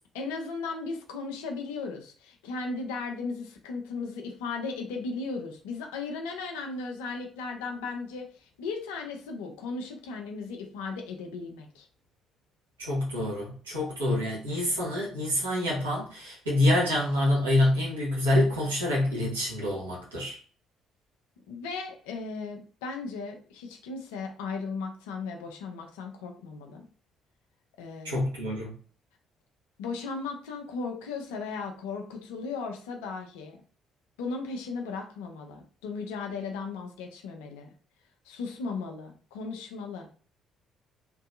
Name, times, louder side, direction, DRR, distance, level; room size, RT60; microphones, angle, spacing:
voice 1, 0.1-11.9 21.5-26.8 27.8-28.3 29.8-33.6 34.2-37.7 38.2-40.1, left 4 dB, 75° left, 0.6 m, -36 dB
voice 2, 12.8-20.4 28.0-28.7, left 1 dB, 85° right, 1.3 m, -26 dB
3.0 x 2.6 x 2.5 m
hypercardioid pair, 50°, 0 cm